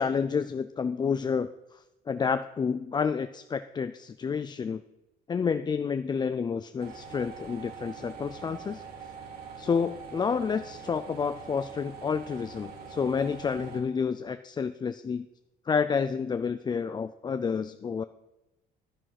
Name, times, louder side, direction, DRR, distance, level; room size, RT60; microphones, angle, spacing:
voice 1, 0.0-1.5 2.1-4.8 5.3-8.8 9.6-15.3 15.7-18.0, left 6 dB, 25° left, 12 dB, 0.4 m, -29 dB
sound 1, 6.8-13.8, right 5 dB, 70° right, 3.1 m, -44 dB
10.0 x 9.8 x 5.8 m, 0.95 s
cardioid pair, 110°, 17 cm